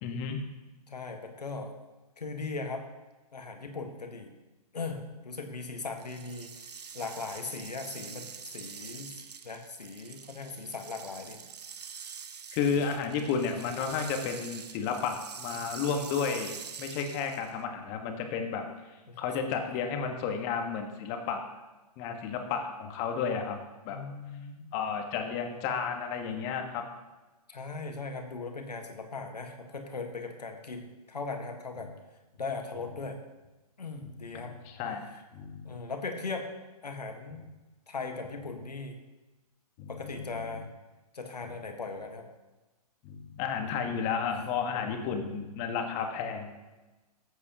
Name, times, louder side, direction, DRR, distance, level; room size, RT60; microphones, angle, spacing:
voice 1, 0.0-0.4 12.5-16.5 16.8-18.7 19.2-21.5 22.0-23.6 23.8-24.0 24.7-26.9 31.8-31.9 34.0-35.1 35.3-35.8 39.8-40.6 43.0-46.5, left 6 dB, 35° left, 4 dB, 1.4 m, -32 dB
voice 2, 0.9-1.7 2.2-2.8 3.3-4.3 4.7-6.5 6.9-9.2 9.4-11.4 13.6-13.7 15.5-15.6 19.1-19.2 19.7-19.8 23.9-24.7 27.5-31.9 32.4-33.2 33.8-34.5 35.6-36.5 36.8-37.4 37.9-38.9 39.9-40.6 41.1-42.3 44.7-45.3, left 3 dB, 85° left, 4 dB, 1.4 m, -39 dB
sound 1, 6.0-17.6, right 6 dB, 80° right, 0.7 m, -45 dB
13.0 x 8.2 x 2.9 m, 1.1 s
hypercardioid pair, 125°, 20 cm